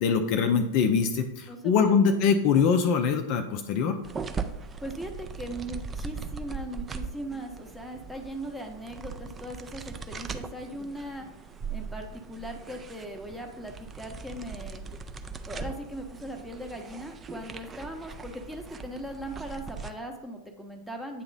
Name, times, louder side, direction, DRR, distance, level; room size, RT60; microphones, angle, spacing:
voice 1, 0.0-4.0, left 6 dB, 45° left, 6 dB, 0.4 m, -23 dB
voice 2, 1.5-2.0 4.8-11.3 11.7-14.8 15.5-21.2, right 1 dB, ahead, 2 dB, 0.8 m, -39 dB
sound 1, 4.0-19.9, right 5 dB, 20° right, 0.4 m, -40 dB
8.3 x 2.9 x 3.9 m, 0.97 s
figure-of-eight pair, 90°, 0 cm